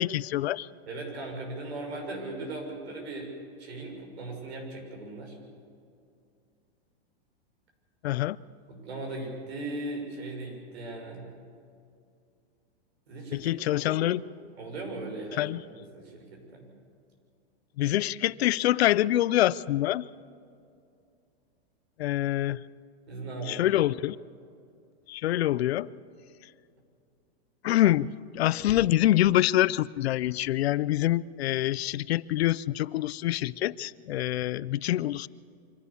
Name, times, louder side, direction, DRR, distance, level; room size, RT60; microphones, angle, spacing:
voice 1, 0.0-0.7 8.0-8.4 13.3-14.2 15.4-15.6 17.8-20.1 22.0-22.6 23.5-24.2 25.1-25.9 27.6-35.3, left 14 dB, 75° left, 20 dB, 0.6 m, -25 dB
voice 2, 0.9-3.3 3.6-5.4 8.7-11.3 13.1-14.0 14.6-15.6 15.9-16.7 23.1-23.7, right 2 dB, 75° right, 1 dB, 6.5 m, -38 dB
25.5 x 15.5 x 7.0 m, 2.4 s
supercardioid pair, 165°, 32 cm